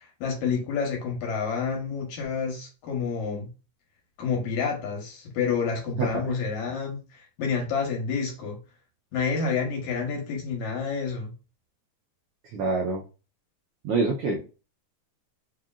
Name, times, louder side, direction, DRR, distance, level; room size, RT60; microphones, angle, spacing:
voice 1, 0.0-3.5 4.2-8.6 9.1-11.3, left 5 dB, 75° left, 0 dB, 2.5 m, -29 dB
voice 2, 6.0-6.4 12.4-13.0 13.8-14.4, right 3 dB, 85° right, -1 dB, 1.2 m, -26 dB
4.9 x 2.8 x 2.4 m, 0.32 s
omnidirectional pair, 3.3 m